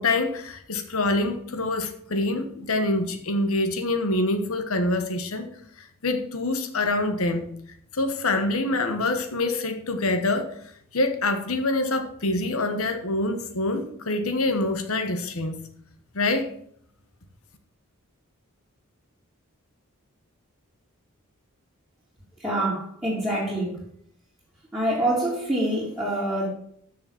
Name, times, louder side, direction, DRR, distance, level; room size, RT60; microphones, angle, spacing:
voice 1, 0.0-5.5 5.8-7.4 7.9-10.6 10.9-15.6 16.1-16.5, left 2 dB, 70° left, 7 dB, 1.2 m, -25 dB
voice 2, 22.4-23.8 24.7-26.5, right 1 dB, 10° right, -10 dB, 2.6 m, -26 dB
6.8 x 6.5 x 7.2 m, 0.66 s
head